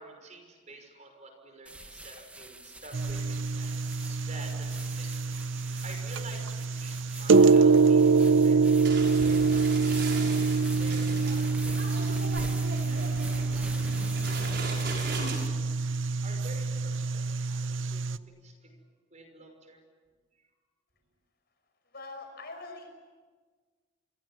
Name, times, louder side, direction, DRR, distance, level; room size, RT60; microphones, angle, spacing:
voice 1, 0.0-5.1 5.8-8.6 9.2-10.2 10.8-15.5 16.2-18.8 19.1-19.8 20.3-20.5, right 2 dB, 40° right, 5 dB, 5.7 m, -49 dB
sound 1, 1.7-15.5, right 2 dB, 5° right, 1.2 m, -45 dB
sound 2, 2.9-18.2, right 4 dB, 85° right, 0.7 m, -25 dB
sound 3, 8.8-15.4, right 3 dB, 60° right, 6.3 m, -39 dB
voice 2, 21.9-22.9, left 3 dB, 55° left, 5 dB, 5.9 m, -43 dB
28.5 x 23.5 x 7.5 m, 1.4 s
head